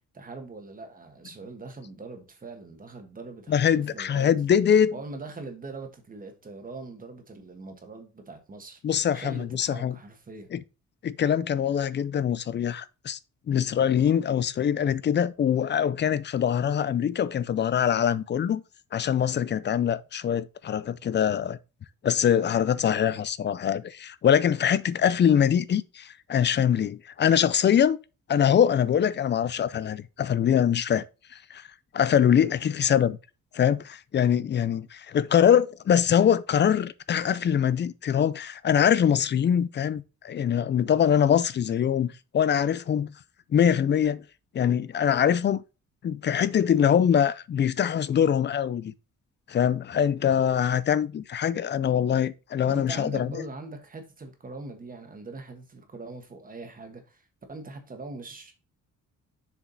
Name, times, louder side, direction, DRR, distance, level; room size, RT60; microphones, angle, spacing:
voice 1, 0.1-4.4 4.9-8.8 9.1-10.5 52.7-58.5, right 3 dB, 25° right, 1.4 m, -42 dB
voice 2, 3.5-4.9 8.8-10.0 10.5-10.6 11.0-13.2 13.5-18.6 18.9-21.6 22.0-28.0 28.3-31.0 31.5-31.6 31.9-33.2 33.5-43.1 43.5-44.2 44.5-45.6 46.0-48.9 49.5-53.4, left 8 dB, 35° left, 0.4 m, -23 dB
7.0 x 4.9 x 3.9 m
wide cardioid pair, 165°, 31 cm